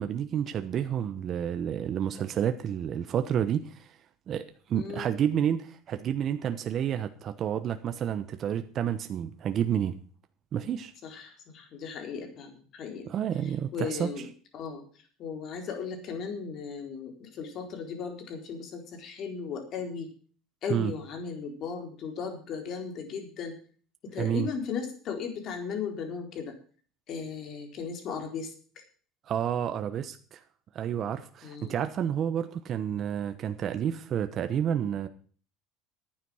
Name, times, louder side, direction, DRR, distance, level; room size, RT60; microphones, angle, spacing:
voice 1, 0.0-4.0 4.3-10.0 10.5-10.9 13.1-14.1 20.7-20.9 24.2-24.5 29.3-30.4 30.7-35.1, right 9 dB, 45° right, 1.0 m, -30 dB
voice 2, 4.7-5.1 11.0-13.1 13.7-14.3 14.5-14.8 15.2-20.1 20.6-23.6 24.0-26.5 27.1-28.5 31.4-31.8, left 6 dB, 50° left, 4.1 m, -36 dB
11.5 x 9.5 x 6.3 m
supercardioid pair, 115°, 0 cm